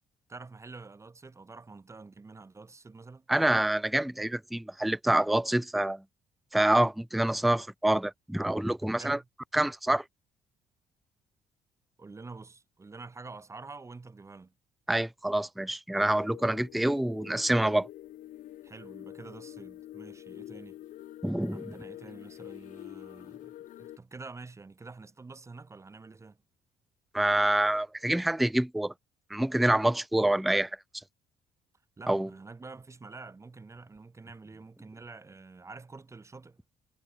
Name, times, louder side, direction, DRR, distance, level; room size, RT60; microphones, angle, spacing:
voice 1, 0.3-3.3 8.8-9.3 12.0-14.5 18.6-20.8 21.5-26.4 32.0-36.6, right 3 dB, 20° right, 4.0 m, -47 dB
voice 2, 3.3-6.0 6.5-9.2 9.5-10.0 14.9-17.9 21.2-21.6 27.1-28.9 29.3-30.7 32.1-32.3, right 1 dB, ahead, 0.4 m, -26 dB
sound 1, 16.0-24.0, left 13 dB, 60° left, 0.6 m, -46 dB
cardioid pair, 125°, 15 cm